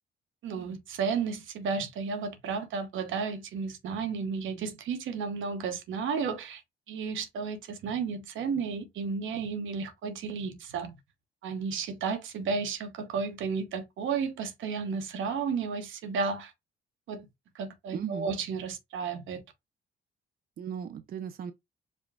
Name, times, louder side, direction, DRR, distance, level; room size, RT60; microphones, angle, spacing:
voice 1, 0.4-6.6 6.9-10.9 11.4-16.5 17.1-17.3 17.5-19.4, right 5 dB, 80° right, 0.9 m, -33 dB
voice 2, 17.9-18.3 20.6-21.5, right 8 dB, 50° right, 0.5 m, -36 dB
5.1 x 2.2 x 3.5 m
cardioid pair, 90°, 20 cm